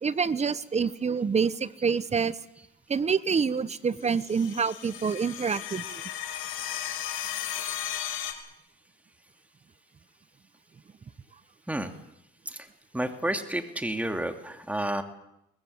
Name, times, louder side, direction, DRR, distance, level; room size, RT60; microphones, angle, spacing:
voice 1, 0.0-2.4 2.9-6.0, right 6 dB, 35° right, 17 dB, 1.1 m, -27 dB
sound 1, 4.0-8.3, left 10 dB, 90° left, 3.6 m, -35 dB
voice 2, 12.9-15.0, right 1 dB, 5° right, 6 dB, 2.7 m, -30 dB
23.0 x 19.5 x 8.2 m, 0.81 s
cardioid pair, 90°, 20 cm